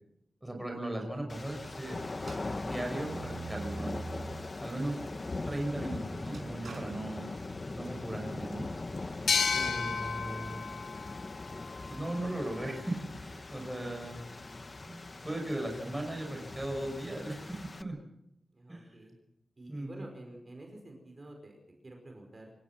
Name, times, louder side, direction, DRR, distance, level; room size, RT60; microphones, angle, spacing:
voice 1, 0.4-2.0 2.6-3.9 4.6-5.0 5.4-7.3 7.7-8.6 9.5-10.6 11.9-14.2 14.9-15.0 15.2-18.0 18.7-18.9 19.7-20.0, right 1 dB, 5° right, 3 dB, 5.6 m, -37 dB
sound 1, 1.3-17.8, left 2 dB, 30° left, 1.0 m, -41 dB
sound 2, 2.2-4.6 5.0-7.9, right 3 dB, 65° right, 5.3 m, -45 dB
sound 3, 9.3-12.6, left 5 dB, 75° left, 1.2 m, -33 dB
voice 2, 18.5-19.2 19.6-22.5, right 1 dB, 30° right, 2 dB, 5.3 m, -49 dB
28.0 x 16.5 x 6.0 m, 0.77 s
wide cardioid pair, 155°, 0 cm